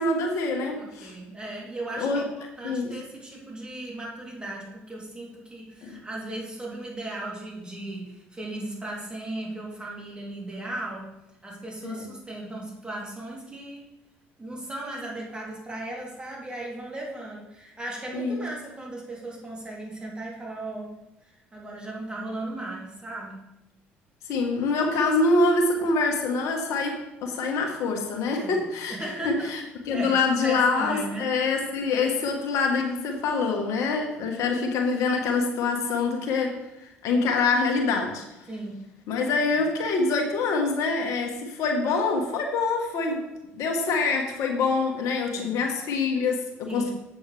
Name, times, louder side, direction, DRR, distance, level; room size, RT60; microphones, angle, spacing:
voice 1, 0.0-1.1 2.0-2.2 2.6-2.9 5.8-5.9 11.8-12.1 18.1-18.5 24.3-29.0 29.2-38.2 39.1-43.3 43.5-46.9, left 3 dB, 65° left, 3 dB, 1.5 m, -25 dB
voice 2, 0.7-2.2 2.6-11.1 11.4-13.8 14.4-23.5 28.3-29.5 29.9-31.3 34.2-34.3 38.5-38.8 45.3-45.6 46.7-46.9, right 2 dB, 15° right, -4 dB, 3.3 m, -37 dB
8.1 x 7.0 x 3.4 m, 0.92 s
hypercardioid pair, 65°, 6 cm